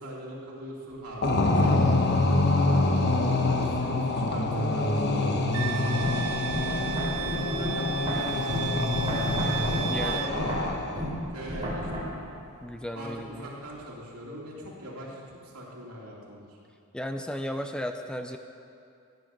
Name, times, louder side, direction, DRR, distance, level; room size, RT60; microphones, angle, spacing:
voice 1, 0.0-2.9 3.4-6.1 6.5-6.7 7.2-9.4 9.8-10.7 11.3-12.1 12.9-16.6, equal, 80° right, -4 dB, 3.0 m, -41 dB
sound 1, 1.2-11.1, left 2 dB, 50° left, 1.1 m, -26 dB
Wind instrument woodwind instrument, 5.5-10.3, right 11 dB, 65° right, 0.5 m, -35 dB
sound 2, 6.0-12.0, equal, 20° right, 3.4 m, -32 dB
voice 2, 9.9-10.5 12.6-13.5 16.9-18.4, equal, 5° left, 6 dB, 0.5 m, -35 dB
15.0 x 9.5 x 6.0 m, 2.5 s
head